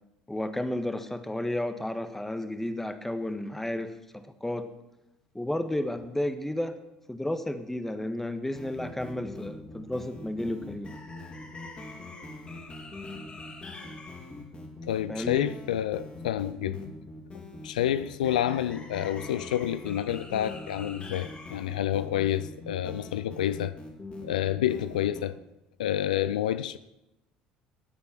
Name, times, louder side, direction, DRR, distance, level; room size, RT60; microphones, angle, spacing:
voice 1, 0.3-4.7 5.3-6.8 7.1-10.9 15.1-15.5, left 1 dB, 5° left, 9 dB, 1.5 m, -32 dB
sound 1, 8.5-25.2, left 2 dB, 30° left, 3.7 m, -42 dB
voice 2, 14.9-16.9 17.6-23.7 24.2-25.4 25.8-26.8, left 11 dB, 80° left, 15 dB, 0.4 m, -29 dB
19.0 x 8.4 x 6.0 m, 0.92 s
hypercardioid pair, 65°, 4 cm